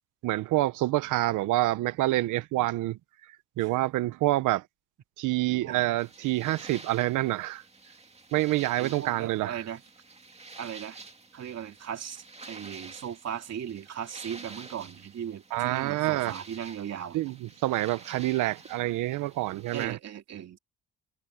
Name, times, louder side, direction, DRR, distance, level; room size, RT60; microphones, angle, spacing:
voice 1, 0.2-3.0 3.6-4.6 5.2-7.6 8.3-9.6 15.5-16.3 17.1-17.3 17.6-20.0, right 17 dB, 90° right, 0.8 m, -27 dB
voice 2, 5.5-5.8 8.8-9.8 10.6-11.0 11.3-17.2 19.7-20.6, right 9 dB, 55° right, 2.6 m, -38 dB
sound 1, 6.0-19.9, right 3 dB, 20° right, 2.4 m, -49 dB
cardioid pair, 90°, 30 cm